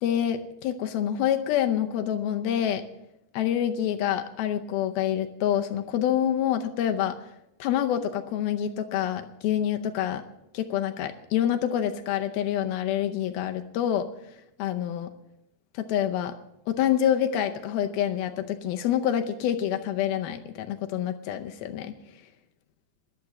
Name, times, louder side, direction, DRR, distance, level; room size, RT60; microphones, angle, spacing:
voice 1, 0.0-2.8 3.3-7.2 7.6-10.2 10.5-14.1 14.6-15.1 15.7-16.3 16.7-21.9, left 10 dB, 75° left, 7 dB, 2.4 m, -27 dB
13.0 x 11.5 x 7.0 m, 0.84 s
omnidirectional pair, 4.8 m